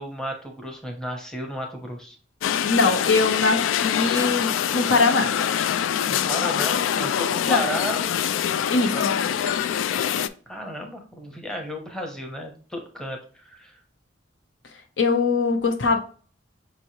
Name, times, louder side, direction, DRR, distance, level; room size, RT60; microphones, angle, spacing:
voice 1, 0.0-2.2 6.1-8.0 8.9-9.0 10.5-13.8, equal, 5° left, 0.7 m, -33 dB
sound 1, 2.4-10.3, left 9 dB, 90° left, 0.3 m, -24 dB
voice 2, 2.6-5.4 7.4-7.7 8.7-9.1 15.0-16.0, left 3 dB, 75° left, 0.8 m, -22 dB
5.5 x 3.0 x 2.8 m
head